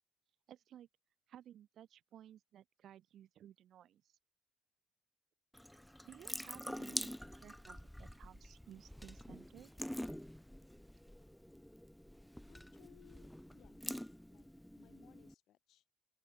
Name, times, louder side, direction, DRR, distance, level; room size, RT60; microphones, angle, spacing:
voice 1, 0.5-0.9 1.3-4.2 6.0-9.7, right 11 dB, 70° right, 0.7 m, -57 dB
Water tap faucet / Sink (filling or washing) / Drip, 5.5-15.3, equal, 5° left, 0.4 m, -47 dB
voice 2, 12.5-14.5 14.8-15.8, left 13 dB, 80° left, 4.5 m, -66 dB
open air
cardioid pair, 90°, 0 cm